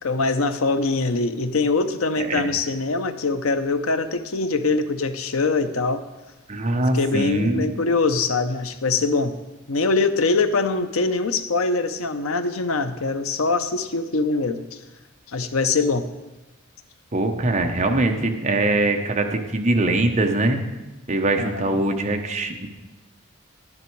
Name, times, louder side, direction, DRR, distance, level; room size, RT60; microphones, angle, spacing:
voice 1, 0.0-6.0 6.7-9.3 9.7-14.8 15.3-16.1 21.4-21.9, left 3 dB, 80° left, 10 dB, 0.7 m, -23 dB
voice 2, 6.5-7.7 17.1-20.6 21.1-22.7, right 2 dB, 35° right, 4 dB, 0.9 m, -22 dB
11.0 x 9.7 x 4.6 m, 1.1 s
head